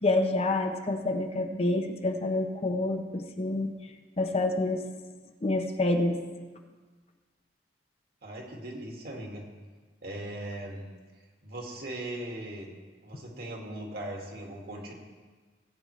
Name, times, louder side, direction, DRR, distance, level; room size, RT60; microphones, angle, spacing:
voice 1, 0.0-3.7 4.2-4.8 5.4-6.2, left 2 dB, 35° left, 5 dB, 0.8 m, -27 dB
voice 2, 8.2-9.5 10.0-10.9 11.4-12.7 13.0-14.9, right 1 dB, 60° right, 0 dB, 2.0 m, -39 dB
17.5 x 8.7 x 3.2 m, 1.4 s
head